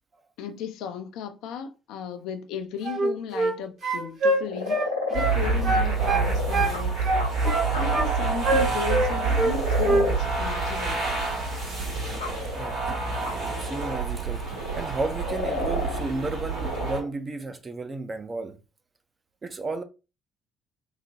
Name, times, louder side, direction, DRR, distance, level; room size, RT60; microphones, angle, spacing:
voice 1, 0.4-4.8 5.1-7.0 7.4-11.0, left 7 dB, 60° left, 0.5 m, -35 dB
sound 1, 2.8-3.6 3.8-5.4 5.6-6.8 7.0-8.1 8.4-9.6 9.8-10.1, right 2 dB, 50° right, 1.4 m, -24 dB
sound 2, 4.3-7.3 7.7-7.9 9.3-10.2 10.6-12.8 13.2-14.0 14.3-16.0 16.4-17.1, left 2 dB, 85° left, 0.8 m, -32 dB
sound 3, 5.1-17.0, right 4 dB, 75° right, 2.1 m, -27 dB
voice 2, 13.4-14.5 14.7-18.6 19.4-19.8, right 3 dB, 30° right, 0.6 m, -33 dB
3.9 x 2.9 x 2.8 m
figure-of-eight pair, 50°, 0 cm